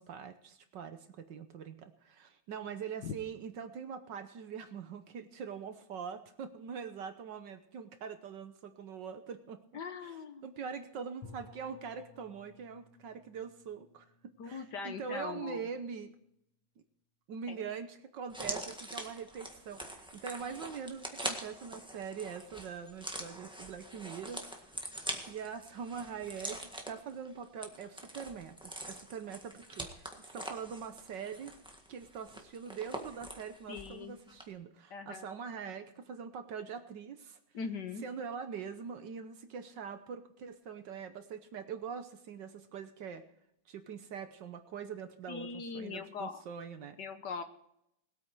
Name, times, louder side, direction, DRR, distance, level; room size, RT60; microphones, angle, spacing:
voice 1, 0.0-9.6 10.0-16.1 17.3-24.7 25.2-31.5 31.9-37.4 38.0-43.2 43.7-47.0, right 6 dB, 60° right, 9 dB, 1.4 m, -43 dB
voice 2, 9.7-10.5 14.4-15.7 17.5-17.6 33.7-34.2 34.9-35.3 37.5-38.0 45.3-46.4 47.0-47.4, left 5 dB, 60° left, 8 dB, 1.4 m, -41 dB
Bowed string instrument, 11.2-16.0, left 3 dB, 90° left, 2.3 m, -58 dB
sound 1, 18.3-34.0 34.3-34.4, right 1 dB, 5° right, 1.3 m, -44 dB
20.0 x 8.7 x 4.7 m, 0.77 s
omnidirectional pair, 2.4 m